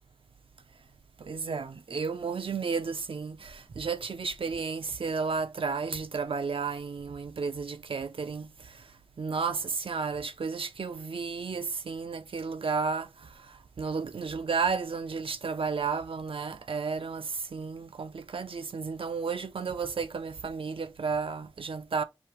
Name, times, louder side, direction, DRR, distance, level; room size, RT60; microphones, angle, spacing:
voice 1, 1.2-8.8 9.2-22.0, right 5 dB, 85° right, 0.5 m, -33 dB
5.1 x 2.8 x 3.0 m
wide cardioid pair, 50°, 9 cm